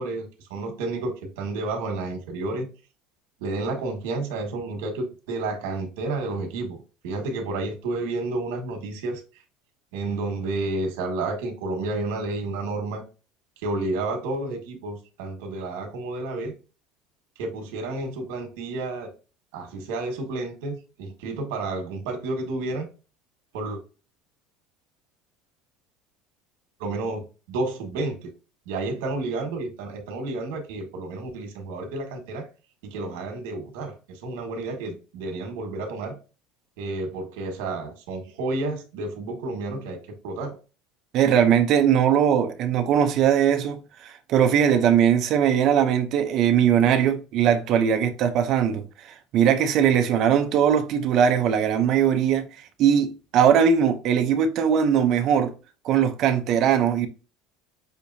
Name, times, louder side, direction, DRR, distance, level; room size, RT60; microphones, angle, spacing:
voice 1, 0.0-2.7 3.4-9.2 9.9-13.0 13.6-16.5 17.4-19.1 19.5-22.9 23.5-23.8 26.8-28.3 28.6-32.5 32.8-36.1 36.8-40.6, right 2 dB, 85° right, 1.5 m, -31 dB
voice 2, 41.1-52.5 52.8-55.5 55.8-57.1, right 8 dB, 40° right, 0.7 m, -20 dB
6.6 x 2.8 x 2.7 m
cardioid pair, 165°, 0 cm